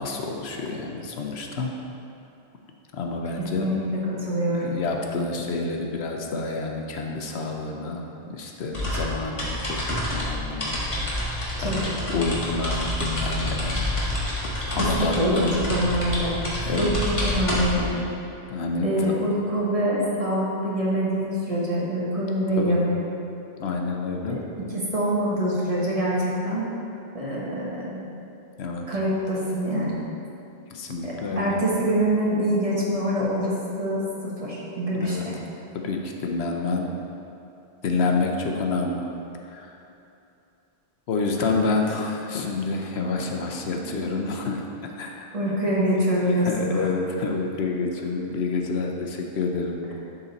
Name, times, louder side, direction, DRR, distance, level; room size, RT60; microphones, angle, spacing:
voice 1, 0.0-1.7 2.9-3.7 4.5-13.9 14.4-15.6 16.6-16.9 18.5-19.4 22.6-22.8 23.6-24.4 28.6-28.9 30.7-31.5 34.9-35.3 35.7-36.9 37.8-39.1 39.5-39.8 41.1-45.3 46.2-49.8, left 3 dB, 75° left, 2 dB, 1.0 m, -28 dB
voice 2, 4.1-4.7 11.6-12.0 15.0-16.4 16.7-16.9 17.2-18.0 18.8-23.0 24.3-24.4 24.7-26.7 27.1-28.0 28.9-30.0 31.0-35.3 43.8-43.9 45.3-46.8, equal, 35° right, -6 dB, 1.4 m, -25 dB
sound 1, 8.7-18.0, left 1 dB, 30° left, 1.5 m, -28 dB
11.5 x 3.9 x 4.0 m, 2.7 s
omnidirectional pair, 1.1 m